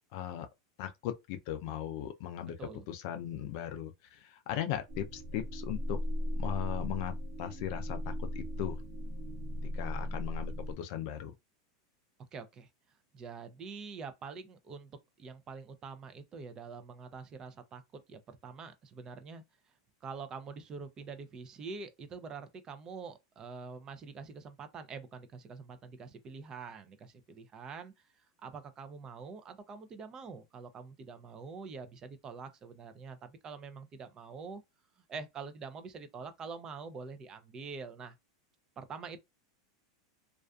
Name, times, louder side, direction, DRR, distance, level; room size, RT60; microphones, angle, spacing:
voice 1, 0.1-0.5 0.8-2.6 2.9-6.0 6.4-8.0 8.3-8.8 9.7-11.3, left 11 dB, 60° left, 0.4 m, -38 dB
sound 1, 4.9-10.7, left 1 dB, 55° right, 0.9 m, -37 dB
voice 2, 9.8-10.2 12.3-12.7 13.1-14.9 15.2-19.4 20.0-34.6 35.1-38.2 38.8-39.2, right 5 dB, 30° right, 0.5 m, -45 dB
2.4 x 2.4 x 2.3 m
supercardioid pair, 125°, 2 cm